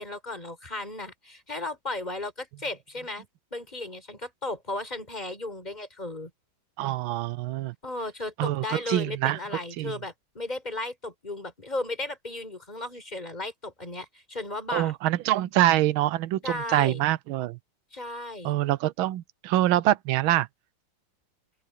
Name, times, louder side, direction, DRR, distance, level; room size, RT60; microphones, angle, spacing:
voice 1, 0.0-3.3 3.5-6.3 7.8-14.9 16.4-17.0 17.9-18.6, left 2 dB, 20° left, 5.0 m, -35 dB
voice 2, 6.8-7.7 8.4-9.4 9.8-9.9 14.7-17.6 18.4-20.5, right 14 dB, 85° right, 1.5 m, -25 dB
open air
omnidirectional pair, 2.2 m